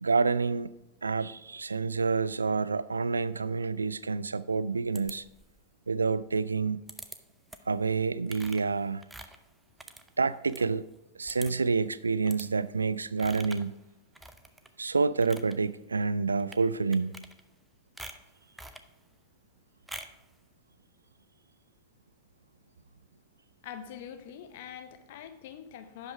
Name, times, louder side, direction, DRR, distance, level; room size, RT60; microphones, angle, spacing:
voice 1, 0.0-0.7 1.0-5.2 5.9-6.8 7.7-9.0 10.2-10.8 11.2-13.7 14.8-17.2, right 4 dB, 75° right, 0.3 m, -28 dB
sound 1, 4.9-5.6 6.9-7.2 7.5-7.8 8.3-10.7 11.0-11.1 11.3-11.7 12.3-12.5 13.2-13.7 14.1-14.7 15.1-15.5 16.4-16.6 16.9-17.6 18.0-18.9 19.9-20.2, right 2 dB, 5° right, 0.6 m, -46 dB
voice 2, 23.6-26.1, left 9 dB, 50° left, 0.9 m, -44 dB
11.0 x 5.3 x 4.7 m
figure-of-eight pair, 90°, 0 cm